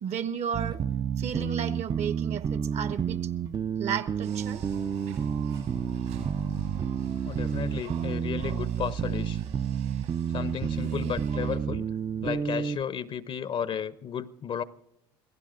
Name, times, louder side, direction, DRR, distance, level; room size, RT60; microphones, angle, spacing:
voice 1, 0.0-0.8 1.2-3.3 3.8-4.6, right 8 dB, 55° right, 1.1 m, -33 dB
Bass - Walking Feel, 0.5-12.8, right 8 dB, 30° right, 0.4 m, -30 dB
sound 1, 4.2-11.6, right 6 dB, 80° right, 7.0 m, -45 dB
voice 2, 7.2-9.4 10.3-11.9 12.2-14.6, left 8 dB, 45° left, 0.7 m, -33 dB
26.5 x 16.5 x 2.5 m
hypercardioid pair, 70°, 14 cm